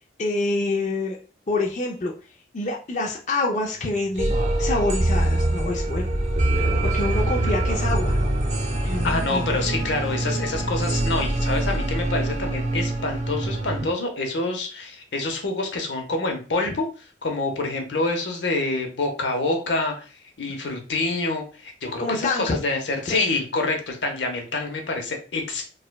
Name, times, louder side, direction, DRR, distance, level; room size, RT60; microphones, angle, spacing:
voice 1, 0.2-1.2 1.5-2.1 2.5-6.1 6.8-8.3 8.8-9.7 22.0-22.6 23.0-23.3, left 2 dB, 40° left, -1 dB, 0.5 m, -26 dB
sound 1, 4.2-13.9, right 1 dB, 40° right, 0.6 m, -24 dB
voice 2, 9.0-16.9 17.2-20.1 20.4-25.7, left 2 dB, 85° left, 3 dB, 0.8 m, -27 dB
4.7 x 2.2 x 2.2 m, 0.36 s
head